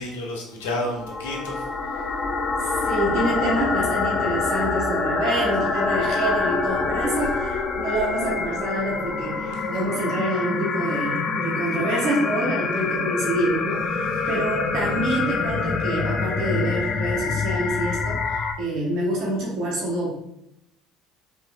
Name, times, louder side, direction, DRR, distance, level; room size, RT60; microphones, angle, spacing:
voice 1, 0.0-2.0 14.1-14.3, left 1 dB, 80° left, 0 dB, 0.7 m, -31 dB
sound 1, 0.7-18.5, left 4 dB, 45° left, 0.5 m, -26 dB
voice 2, 2.6-20.1, right 1 dB, 60° right, -3 dB, 1.1 m, -27 dB
4.3 x 2.9 x 2.6 m, 0.78 s
hypercardioid pair, 65°, 0 cm